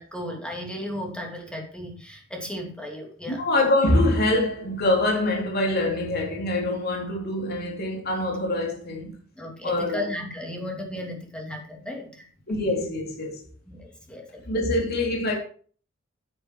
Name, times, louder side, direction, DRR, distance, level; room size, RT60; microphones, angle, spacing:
voice 1, 0.0-3.4 9.4-12.3 13.7-14.4, left 1 dB, 5° left, 2.7 m, -35 dB
voice 2, 3.3-9.1 9.6-10.1 12.5-13.4 14.4-15.4, left 1 dB, 55° left, 3.3 m, -24 dB
9.5 x 9.4 x 4.7 m
head